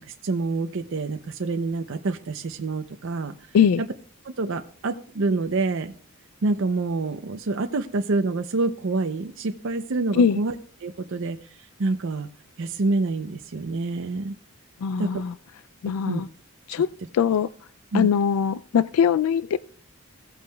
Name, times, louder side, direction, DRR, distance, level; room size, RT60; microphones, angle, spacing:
voice 1, 0.0-3.3 3.8-3.9 4.2-5.9 6.4-10.5 10.8-12.3 12.6-14.3 15.0-15.2 16.1-16.2 17.9-18.1, right 3 dB, 60° right, 7 dB, 0.6 m, -27 dB
voice 2, 3.5-3.8 10.1-10.4 14.8-15.3 15.8-16.3 16.7-16.9 17.1-17.5 17.9-19.6, left 7 dB, 80° left, 16 dB, 0.3 m, -21 dB
16.0 x 8.3 x 2.2 m, 0.44 s
head